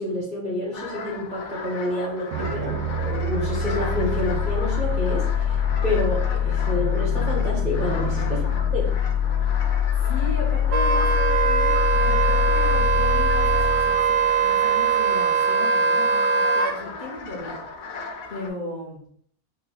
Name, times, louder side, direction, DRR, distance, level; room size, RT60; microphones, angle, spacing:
voice 1, 0.0-8.9, left 1 dB, 35° right, -4 dB, 0.8 m, -29 dB
sound 1, 0.7-18.5, left 3 dB, 70° left, 1.1 m, -37 dB
sound 2, 2.3-15.0, left 7 dB, 65° right, 0.9 m, -24 dB
voice 2, 8.0-8.3 8.5-8.8 10.0-14.1 14.4-17.5 18.3-19.0, left 2 dB, 35° left, -5 dB, 1.0 m, -36 dB
Wind instrument woodwind instrument, 10.7-16.7, right 6 dB, 90° right, 1.1 m, -21 dB
3.9 x 2.2 x 3.9 m, 0.63 s
omnidirectional pair, 1.6 m